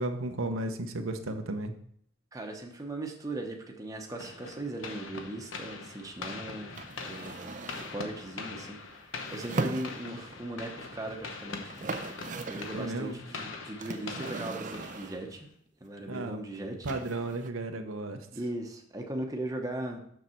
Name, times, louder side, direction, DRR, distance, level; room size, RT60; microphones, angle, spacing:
voice 1, 0.0-1.8 12.7-13.2 16.1-16.4 16.8-18.3, right 2 dB, 85° right, 5 dB, 0.9 m, -34 dB
voice 2, 2.3-6.8 7.0-11.9 12.5-15.5 15.8-16.9 18.3-20.0, right 1 dB, 15° right, 2 dB, 0.9 m, -38 dB
sound 1, 4.2-15.5, left 4 dB, 75° left, 1.0 m, -43 dB
sound 2, 6.8-8.0 9.3-10.4 11.3-11.4 11.6-12.8 13.8-15.3 16.9-17.5, right 3 dB, 40° right, 0.5 m, -38 dB
6.6 x 6.4 x 4.4 m, 0.65 s
head